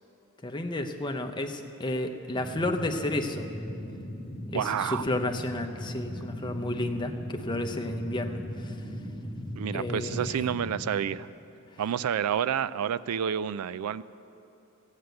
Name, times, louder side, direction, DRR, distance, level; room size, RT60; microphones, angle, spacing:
voice 1, 0.4-3.5 4.5-8.8 9.7-10.4, left 1 dB, 20° left, 5 dB, 0.7 m, -32 dB
sound 1, 2.3-10.9, equal, 5° left, 1.7 m, -38 dB
voice 2, 4.5-5.1 9.5-11.3 11.8-14.0, right 8 dB, 80° right, 16 dB, 0.3 m, -29 dB
15.0 x 8.1 x 7.8 m, 2.9 s
head